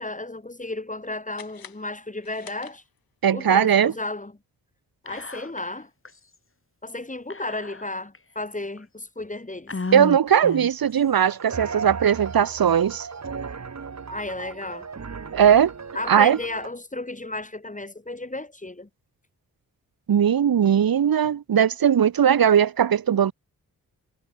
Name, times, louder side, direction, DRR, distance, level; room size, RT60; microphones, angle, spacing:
voice 1, 0.0-2.8 3.3-4.3 5.0-5.9 6.8-9.7 14.1-14.9 15.9-18.9, left 2 dB, 20° left, 5.6 m, -33 dB
sound 1, 1.3-3.3, left 8 dB, 85° left, 8.0 m, -48 dB
voice 2, 3.2-3.9 9.9-13.1 15.3-15.7 16.1-16.4 20.1-23.3, right 8 dB, 80° right, 2.3 m, -19 dB
Whispering, 5.1-5.8 6.1-6.2 7.3-8.2 8.8-8.9 9.7-10.9, left 3 dB, 35° left, 7.5 m, -33 dB
sound 2, 11.2-16.7, right 5 dB, 50° right, 2.5 m, -36 dB
cardioid pair, 60°, 35 cm